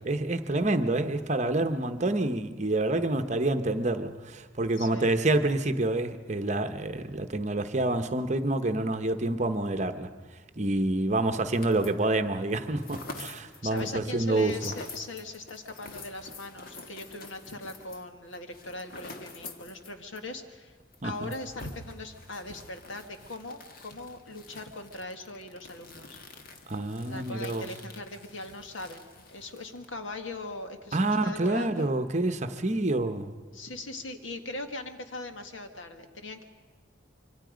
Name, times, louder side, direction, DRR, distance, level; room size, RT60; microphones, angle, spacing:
voice 1, 0.0-10.1 10.6-14.7 21.0-21.3 26.7-27.6 30.9-33.3, right 2 dB, 35° right, 1.0 m, -27 dB
voice 2, 4.8-5.1 13.6-20.8 21.0-26.2 27.1-31.9 33.5-36.4, left 2 dB, 80° left, 1.8 m, -40 dB
sound 1, 11.5-12.1 12.4-20.3 20.5-20.6 20.9-29.9, left 3 dB, 50° left, 1.6 m, -47 dB
25.5 x 24.5 x 5.2 m
head